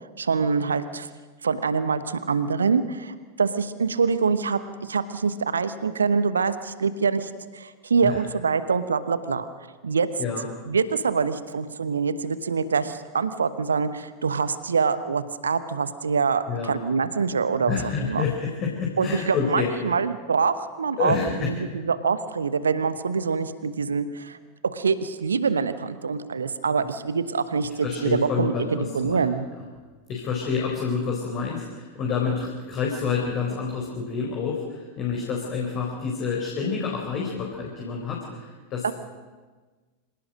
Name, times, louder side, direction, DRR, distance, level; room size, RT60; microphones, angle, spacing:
voice 1, 0.2-1.1 1.4-9.5 9.8-10.1 10.7-18.3 19.0-21.2 21.5-24.4 24.6-29.5 38.8-38.9, right 5 dB, 70° right, 13 dB, 1.1 m, -25 dB
voice 2, 17.7-19.7 21.0-21.6 27.8-29.2 29.6-29.7 30.1-38.9, left 5 dB, 35° left, -1 dB, 4.2 m, -28 dB
25.5 x 17.5 x 6.4 m, 1.4 s
figure-of-eight pair, 90°, 0 cm